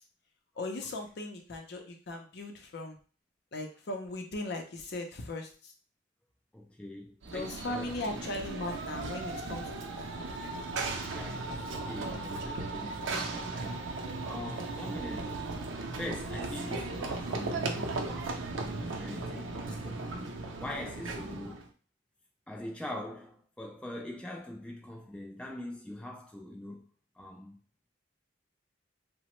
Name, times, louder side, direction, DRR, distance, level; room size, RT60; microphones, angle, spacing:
voice 1, 0.6-3.0 3.5-5.7 7.3-9.7 10.0-10.1 10.3-10.5 19.3-19.8, left 2 dB, 60° left, 0.6 m, -38 dB
voice 2, 6.5-8.4 11.1-13.8 14.2-15.4 16.0-18.1 18.6-20.3 20.6-21.6 22.5-26.9 27.2-27.6, left 1 dB, 5° left, 0.3 m, -43 dB
Run / Train, 7.2-21.7, right 3 dB, 85° right, 0.5 m, -36 dB
3.0 x 2.0 x 3.0 m
head